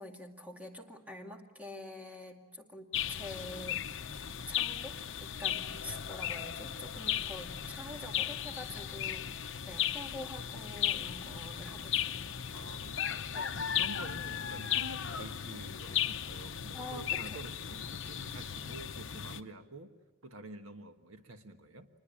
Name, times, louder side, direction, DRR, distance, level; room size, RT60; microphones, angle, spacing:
voice 1, 0.0-3.8 4.5-12.4 13.3-13.6 16.7-17.4, left 1 dB, 5° right, 2 dB, 2.3 m, -46 dB
sound 1, 2.9-19.4, left 9 dB, 60° left, 0.9 m, -36 dB
voice 2, 12.5-13.3 13.6-19.9 20.2-21.9, right 2 dB, 75° right, 7 dB, 1.5 m, -48 dB
27.0 x 21.0 x 8.7 m, 1.1 s
head